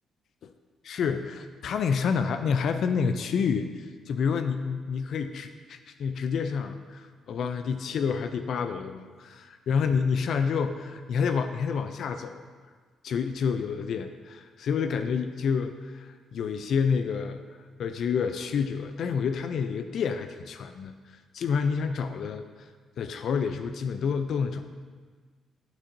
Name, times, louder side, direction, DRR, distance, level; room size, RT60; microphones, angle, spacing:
voice 1, 0.8-12.4 13.0-17.4 17.8-22.7 23.0-24.6, left 6 dB, 65° left, 8 dB, 0.3 m, -29 dB
8.3 x 6.0 x 2.6 m, 1.5 s
cardioid pair, 90°, 0 cm